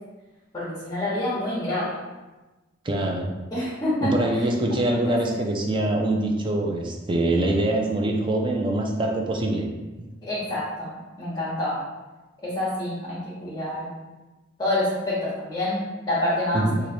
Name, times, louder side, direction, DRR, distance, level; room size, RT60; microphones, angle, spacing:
voice 1, 0.5-2.0 3.5-4.5 4.9-5.3 10.2-11.8 12.4-13.9 14.6-16.7, left 1 dB, 20° left, -10 dB, 1.0 m, -27 dB
voice 2, 2.8-3.3 4.0-9.7 10.0-10.1 16.5-16.8, right 1 dB, 25° right, 1 dB, 0.4 m, -24 dB
3.1 x 2.5 x 4.0 m, 1.2 s
head